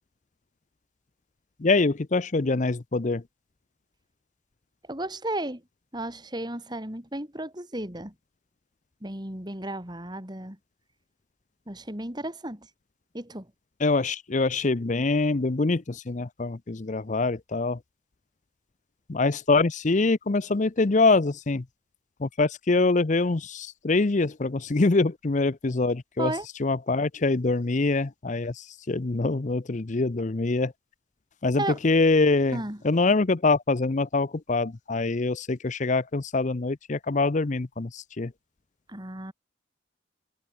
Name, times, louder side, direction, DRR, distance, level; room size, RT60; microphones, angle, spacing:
voice 1, 1.6-3.2 13.8-17.8 19.1-21.6 22.2-26.3 26.6-30.7 31.4-32.6 32.8-38.3, left 3 dB, 40° left, 0.6 m, -24 dB
voice 2, 4.9-5.6 5.9-8.1 9.0-10.6 11.7-12.7 13.1-13.5 26.2-26.5 31.6-31.8 32.5-32.8 38.9-39.3, right 1 dB, 20° right, 4.1 m, -34 dB
head